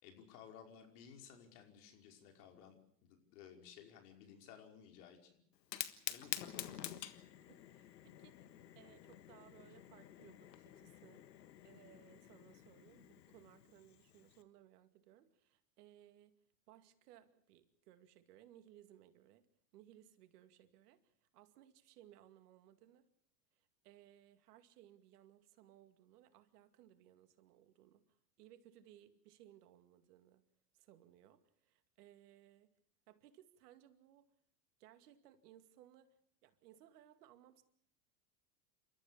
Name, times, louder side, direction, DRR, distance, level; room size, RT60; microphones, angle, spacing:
voice 1, 0.0-2.8 3.0-5.3 6.1-7.0, left 8 dB, 65° left, 4 dB, 5.4 m, -57 dB
Fire, 5.6-14.4, left 11 dB, 85° left, 1.6 m, -49 dB
voice 2, 7.4-8.5 8.7-11.3 11.6-16.4 16.7-19.5 19.7-23.1 23.6-30.4 30.7-32.7 33.1-34.3 34.8-36.2 36.4-37.6, right 12 dB, 70° right, 9 dB, 2.4 m, -63 dB
28.5 x 13.5 x 8.4 m, 0.65 s
hypercardioid pair, 100°, 49 cm